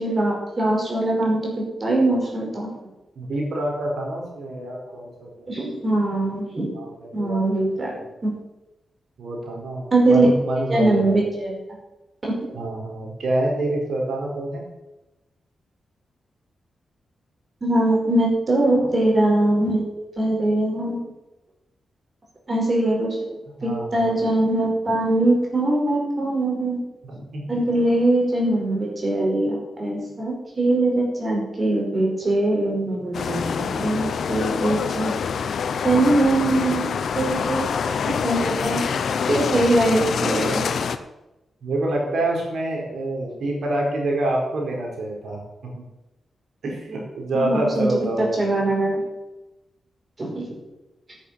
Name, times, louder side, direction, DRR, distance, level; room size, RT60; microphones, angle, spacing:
voice 1, 0.0-2.7 5.5-6.7 7.1-7.9 8.2-8.3 9.9-10.3 10.7-11.6 12.2-12.3 17.6-21.0 22.5-23.1 23.6-26.8 27.5-35.1 35.8-37.6 38.1-38.8 39.3-40.6 47.4-47.9 48.2-49.0 50.2-50.4, right 2 dB, 40° right, -2 dB, 5.1 m, -22 dB
voice 2, 3.1-5.5 6.7-8.1 9.2-11.1 12.5-14.7 18.7-19.0 23.6-24.2 27.0-27.8 38.9-39.6 41.6-45.4 45.7-45.8 46.6-48.6, right 1 dB, 70° right, -1 dB, 4.6 m, -27 dB
sound 1, 33.1-41.0, left 6 dB, 70° left, 0.8 m, -26 dB
10.0 x 8.3 x 7.6 m, 0.99 s
cardioid pair, 60°, 0 cm